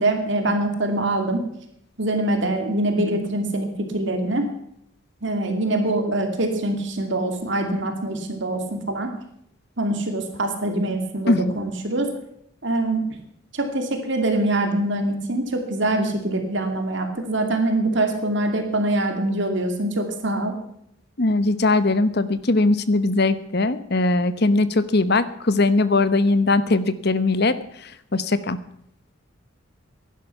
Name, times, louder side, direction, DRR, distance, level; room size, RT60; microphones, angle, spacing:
voice 1, 0.0-1.5 2.0-4.4 5.2-9.1 9.8-12.1 12.6-13.1 13.5-20.6, right 1 dB, 55° right, 5 dB, 2.5 m, -24 dB
voice 2, 21.2-28.6, left 2 dB, 50° left, 14 dB, 1.0 m, -20 dB
16.5 x 11.5 x 5.9 m, 0.75 s
head